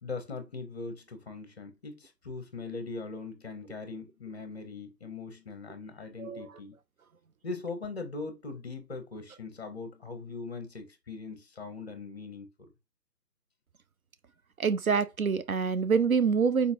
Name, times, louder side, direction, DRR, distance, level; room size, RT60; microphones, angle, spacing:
voice 1, 0.0-6.7 7.4-12.5, left 4 dB, 40° left, 1.0 m, -40 dB
voice 2, 14.6-16.7, right 5 dB, 60° right, 0.5 m, -26 dB
4.4 x 4.1 x 2.6 m
hypercardioid pair, 165°, 49 cm